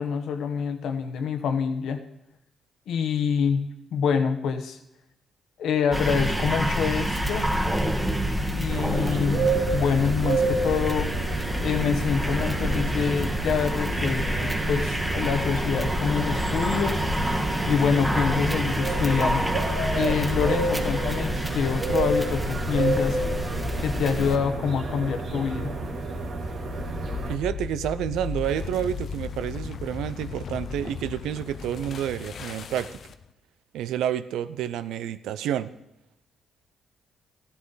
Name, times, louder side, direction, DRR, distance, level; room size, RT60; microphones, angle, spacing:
voice 1, 0.0-2.0 2.9-3.7 3.9-4.8 5.6-7.5 8.5-11.1 11.6-17.0 17.7-19.5 19.9-23.2 23.8-25.7, left 6 dB, 75° left, 8 dB, 1.2 m, -26 dB
sound 1, 5.9-24.4, equal, 5° right, 1.4 m, -28 dB
sound 2, 8.7-27.3, right 2 dB, 65° right, 2.2 m, -30 dB
sound 3, 26.5-33.3, left 6 dB, 55° left, 0.7 m, -36 dB
voice 2, 27.3-33.0 33.7-35.7, right 10 dB, 85° right, 13 dB, 0.5 m, -29 dB
14.5 x 11.0 x 4.0 m, 0.84 s
cardioid pair, 90°, 0 cm